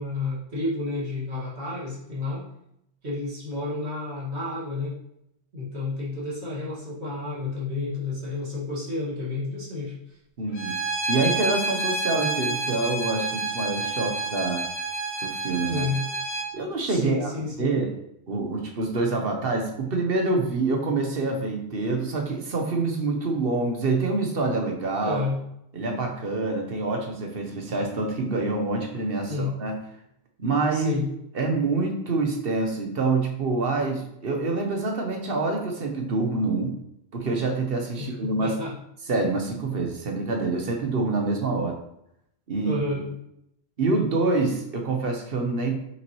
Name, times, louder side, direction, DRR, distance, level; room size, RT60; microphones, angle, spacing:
voice 1, 0.0-2.4 3.0-4.9 5.5-10.2 15.7-16.1 16.8-17.7 25.0-25.4 29.3-29.6 30.7-31.1 38.0-38.7 42.6-43.1, left 3 dB, 85° right, -6 dB, 2.2 m, -30 dB
voice 2, 10.4-10.8 11.1-14.6 15.2-15.8 16.5-17.3 17.6-17.9 18.3-25.2 25.7-29.8 30.4-31.0 31.3-36.8 37.1-38.6 39.1-41.8 42.5-42.7 43.8-45.8, right 3 dB, 60° right, 3 dB, 1.2 m, -26 dB
Bowed string instrument, 10.5-16.5, right 2 dB, 70° left, 1.5 m, -29 dB
6.0 x 5.8 x 3.1 m, 0.78 s
omnidirectional pair, 1.1 m